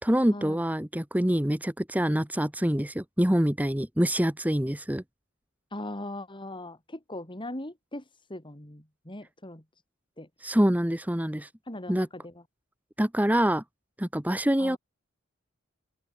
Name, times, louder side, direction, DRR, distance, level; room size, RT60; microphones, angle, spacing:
voice 1, 0.0-5.0 10.4-11.5 11.9-12.1 13.0-13.6 14.0-14.8, equal, 10° right, 1.4 m, -25 dB
voice 2, 5.7-8.0 8.3-9.6 10.2-10.3 11.7-12.4 14.6-14.8, left 1 dB, 25° left, 4.6 m, -39 dB
open air
head